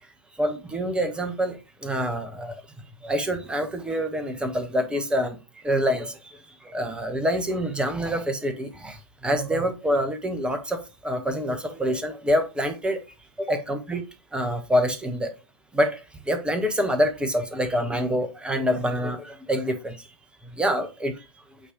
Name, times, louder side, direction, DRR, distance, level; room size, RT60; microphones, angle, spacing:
voice 1, 0.4-2.6 3.0-5.4 5.6-13.0 13.4-14.0 14.3-15.3 15.7-20.1 20.4-21.3, equal, 5° right, 1.2 m, -26 dB
8.7 x 3.2 x 5.0 m
figure-of-eight pair, 100°, 13 cm